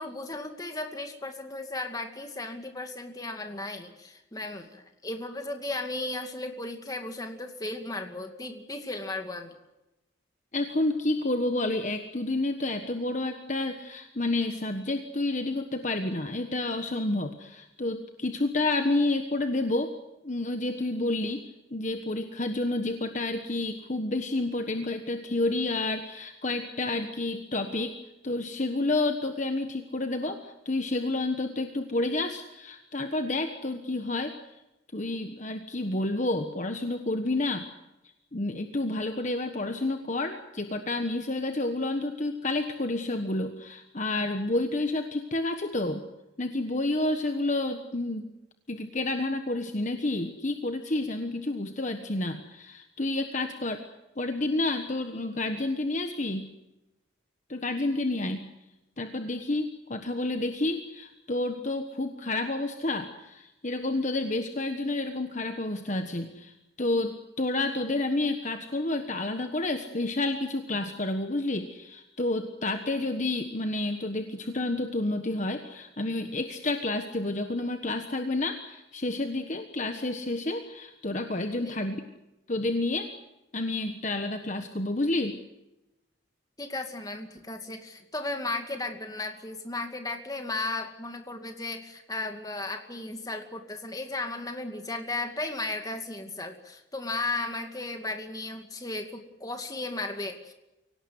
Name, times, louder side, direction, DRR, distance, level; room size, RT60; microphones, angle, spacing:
voice 1, 0.0-9.5 81.6-81.8 86.6-100.5, left 2 dB, 20° left, 5 dB, 2.3 m, -35 dB
voice 2, 10.5-19.9 20.2-21.4 21.7-28.0 28.2-34.3 34.9-37.7 38.3-46.0 46.4-48.3 48.7-53.8 54.2-56.5 57.5-58.4 59.0-66.5 66.8-82.0 82.5-83.1 83.5-85.4, left 2 dB, 40° left, 6 dB, 1.3 m, -30 dB
24.5 x 18.0 x 9.5 m, 0.97 s
head